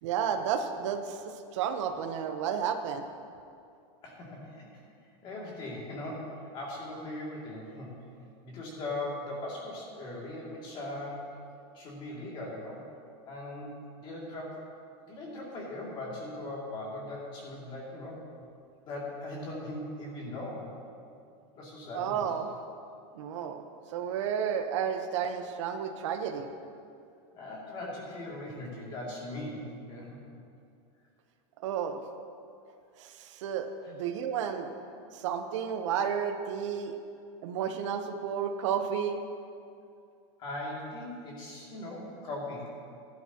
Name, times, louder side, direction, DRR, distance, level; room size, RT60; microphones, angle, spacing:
voice 1, 0.0-3.0 21.9-22.5 23.1-23.6 23.9-26.5 31.6-32.0 33.0-34.7 35.1-37.0 37.4-39.2, right 8 dB, 85° right, 7 dB, 0.9 m, -32 dB
voice 2, 4.0-4.7 5.2-7.9 8.4-11.3 11.7-12.8 13.3-13.7 14.0-14.6 15.1-18.2 18.8-20.7 21.5-22.2 27.3-30.2 33.8-33.9 40.4-42.7, left 1 dB, 30° left, -3 dB, 2.6 m, -39 dB
16.0 x 11.0 x 2.9 m, 2.5 s
supercardioid pair, 165°, 15 cm